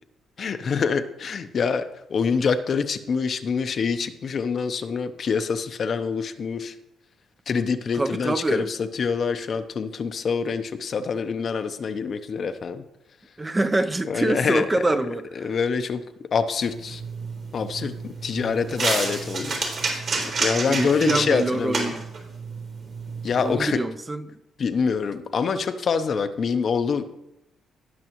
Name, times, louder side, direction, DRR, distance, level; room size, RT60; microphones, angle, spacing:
voice 1, 0.4-1.8 2.1-6.7 7.5-12.8 14.0-14.8 15.4-16.0 16.3-17.0 17.5-19.6 20.4-21.9 23.2-23.8 24.6-27.0, left 5 dB, 50° left, 0.7 m, -25 dB
voice 2, 7.9-8.7 13.4-15.5 20.7-22.0 23.4-24.2, right 2 dB, 20° right, 0.6 m, -25 dB
sound 1, 16.6-23.5, right 3 dB, 60° right, 3.3 m, -30 dB
17.5 x 6.0 x 3.0 m
cardioid pair, 90°, 0 cm